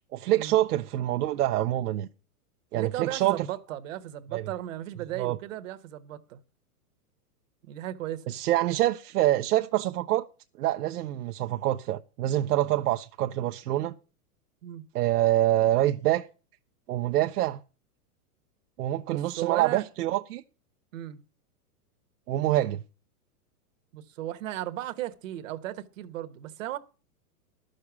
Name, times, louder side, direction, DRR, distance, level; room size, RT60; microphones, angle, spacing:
voice 1, 0.1-2.1 2.7-3.5 4.3-4.4 5.2-5.4 8.3-10.3 10.6-13.9 14.9-16.3 16.9-17.6 18.8-20.4 22.3-22.8, right 14 dB, 75° right, 0.8 m, -26 dB
voice 2, 2.7-6.4 7.6-8.4 14.6-14.8 19.1-19.8 20.9-21.2 23.9-26.8, right 13 dB, 55° right, 1.2 m, -36 dB
12.0 x 6.6 x 7.1 m
supercardioid pair, 155°, 46 cm